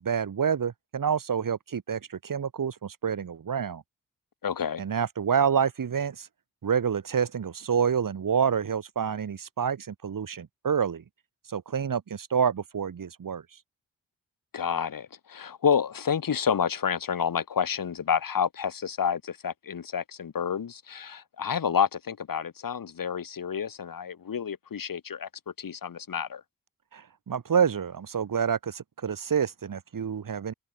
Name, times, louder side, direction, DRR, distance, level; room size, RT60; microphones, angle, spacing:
voice 1, 0.0-3.8 4.8-6.3 6.6-11.0 11.5-13.4 26.9-30.5, right 7 dB, 65° right, 3.6 m, -28 dB
voice 2, 4.4-4.8 14.5-25.3 25.6-26.4, left 7 dB, 65° left, 5.1 m, -29 dB
supercardioid pair, 45°, 36 cm